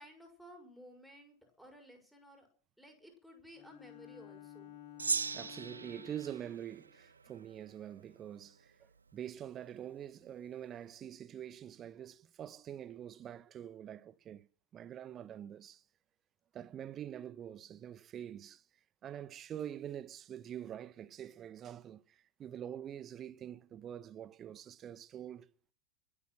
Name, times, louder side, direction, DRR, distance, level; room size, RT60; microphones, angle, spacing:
voice 1, 0.0-2.5 2.8-4.7, equal, ahead, 5.9 m, -56 dB
Bowed string instrument, 3.5-6.6, left 12 dB, 50° left, 2.4 m, -53 dB
Gong, 5.0-7.6, right 5 dB, 75° right, 0.7 m, -39 dB
voice 2, 5.3-15.8 16.5-18.6 19.0-25.5, right 10 dB, 25° right, 1.0 m, -45 dB
22.5 x 8.6 x 6.3 m
figure-of-eight pair, 90°, 0 cm